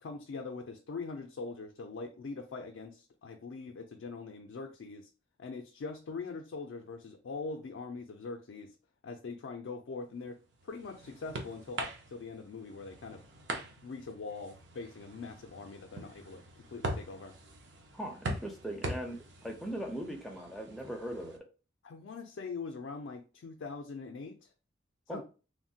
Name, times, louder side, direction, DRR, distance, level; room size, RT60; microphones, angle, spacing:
voice 1, 0.0-5.1 5.4-8.8 9.0-13.2 13.8-16.4 16.7-17.4 21.8-24.5 25.1-25.2, left 4 dB, 75° left, 3 dB, 0.4 m, -42 dB
sound 1, 10.3-21.4, right 1 dB, 70° right, 0.6 m, -43 dB
voice 2, 17.9-21.4 25.1-25.2, right 1 dB, ahead, 1 dB, 0.4 m, -39 dB
3.1 x 2.1 x 2.6 m, 0.35 s
head